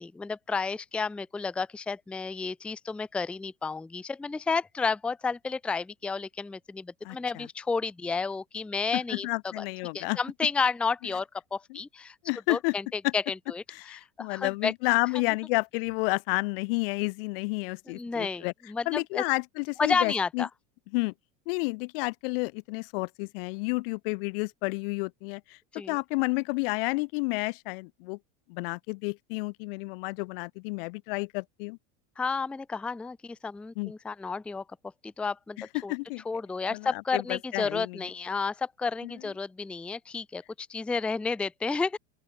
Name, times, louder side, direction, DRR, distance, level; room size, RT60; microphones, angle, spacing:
voice 1, 0.0-9.3 9.6-9.7 9.9-12.1 12.5-13.6 14.2-14.7 17.9-19.2 19.8-20.5 25.7-26.0 32.2-34.6 35.0-35.9 36.3-42.0, left 4 dB, 5° left, 0.6 m, -31 dB
voice 2, 7.0-7.5 8.9-10.2 11.7-11.8 12.2-12.7 13.0-13.1 13.7-18.5 18.9-20.4 20.9-21.1 21.5-25.6 25.9-28.2 28.5-31.8 33.8-33.9 35.7-36.2 36.7-38.0 39.0-39.1, left 28 dB, 50° left, 0.8 m, -30 dB
open air
supercardioid pair, 175°, 36 cm